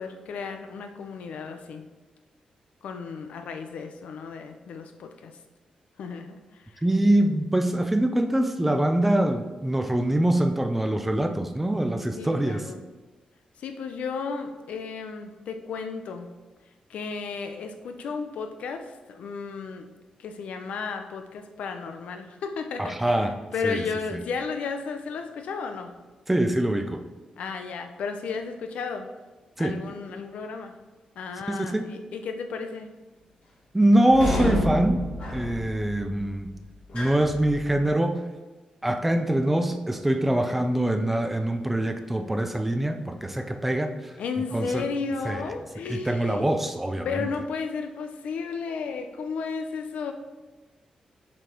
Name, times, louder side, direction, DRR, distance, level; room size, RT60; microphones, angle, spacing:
voice 1, 0.0-1.9 2.8-5.4 6.0-6.8 12.1-12.8 13.6-16.3 16.9-19.9 20.2-25.9 27.4-29.1 29.6-30.8 31.2-32.9 40.2-40.5 44.2-46.5 47.0-50.1, left 5 dB, 90° left, 6 dB, 0.8 m, -34 dB
voice 2, 6.8-12.7 22.8-23.3 23.6-23.9 24.1-24.2 26.3-27.0 29.6-29.8 31.5-31.9 33.7-36.5 36.9-38.2 38.8-44.1 44.5-44.9 45.2-47.3, right 1 dB, 10° right, 6 dB, 0.5 m, -24 dB
sound 1, 34.1-37.9, left 1 dB, 55° left, 2.6 m, -30 dB
7.4 x 5.2 x 4.5 m, 1.3 s
wide cardioid pair, 175°, 2 cm